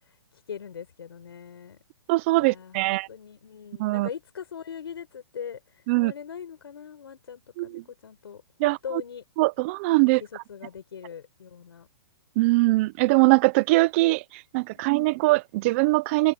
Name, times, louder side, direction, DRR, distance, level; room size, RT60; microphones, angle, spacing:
voice 1, 0.0-1.8 2.4-9.2 10.0-11.9 14.7-14.9, left 7 dB, 80° left, 5.5 m, -41 dB
voice 2, 2.1-3.1 3.8-4.1 5.9-6.1 7.6-7.8 8.6-8.8 9.4-10.2 12.4-16.3, right 22 dB, 30° right, 0.7 m, -22 dB
hypercardioid pair, 155°, 13 cm